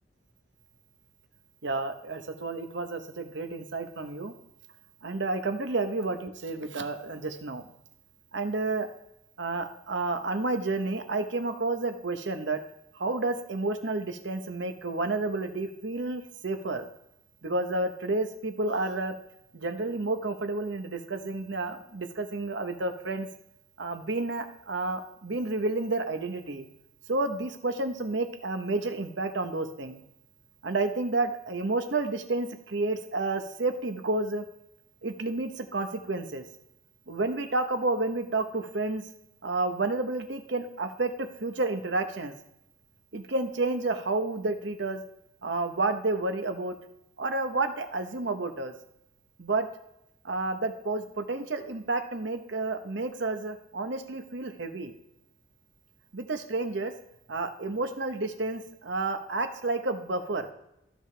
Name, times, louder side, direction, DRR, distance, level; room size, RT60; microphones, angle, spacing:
voice 1, 1.6-4.3 5.0-7.7 8.3-8.9 9.4-12.6 12.9-16.9 17.4-19.1 19.5-23.3 23.8-26.6 27.1-30.0 30.6-34.4 35.0-36.4 37.1-39.0 39.4-42.4 43.1-45.0 45.4-46.7 47.2-48.7 49.4-49.7 50.2-54.9 56.1-56.9 57.3-60.5, right 2 dB, 65° right, 7 dB, 0.9 m, -30 dB
14.5 x 5.0 x 3.3 m, 0.84 s
head